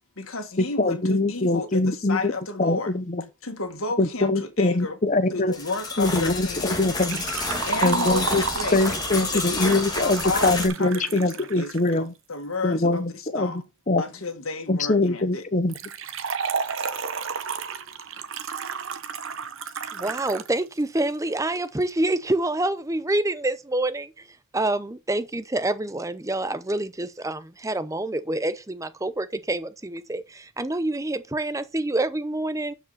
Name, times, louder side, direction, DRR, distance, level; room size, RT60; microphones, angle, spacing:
voice 1, 0.2-2.9 3.4-5.0 5.3-6.7 7.7-8.8 9.2-13.6 14.0-15.5, left 3 dB, 80° left, 1.8 m, -32 dB
voice 2, 0.8-2.3 2.6-3.2 4.0-5.5 6.0-7.3 7.8-8.4 8.7-12.1 12.6-14.0 14.7-15.7, left 2 dB, 35° left, 0.8 m, -23 dB
sound 1, 5.5-10.7, left 3 dB, 20° left, 1.9 m, -30 dB
Liquid, 7.0-12.0 15.7-20.5 20.8-20.9 21.8-21.9, right 6 dB, 70° right, 0.8 m, -32 dB
voice 3, 19.9-24.2 24.5-32.7, right 2 dB, 15° right, 0.6 m, -27 dB
12.0 x 5.1 x 4.1 m
head